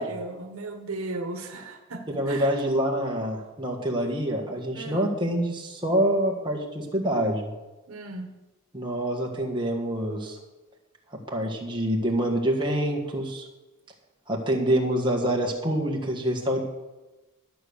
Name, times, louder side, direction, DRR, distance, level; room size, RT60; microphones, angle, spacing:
voice 1, 0.0-2.5 4.7-5.1 7.9-8.3, right 2 dB, 75° right, 5 dB, 1.3 m, -36 dB
voice 2, 2.1-7.5 8.7-10.4 11.1-13.5 14.3-16.6, right 1 dB, 20° right, -1 dB, 1.7 m, -26 dB
12.5 x 7.0 x 6.6 m, 1.1 s
head